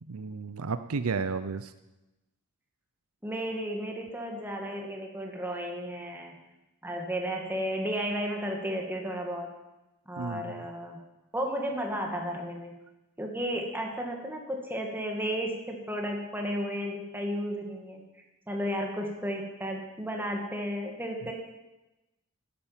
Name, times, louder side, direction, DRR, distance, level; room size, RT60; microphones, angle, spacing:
voice 1, 0.0-1.7 10.2-10.6, right 4 dB, 80° right, 12 dB, 0.6 m, -33 dB
voice 2, 3.2-6.3 6.8-9.5 10.1-11.0 11.3-12.7 13.2-18.0 18.5-21.3, equal, 10° right, 1 dB, 2.1 m, -33 dB
11.0 x 10.5 x 7.5 m, 1.0 s
head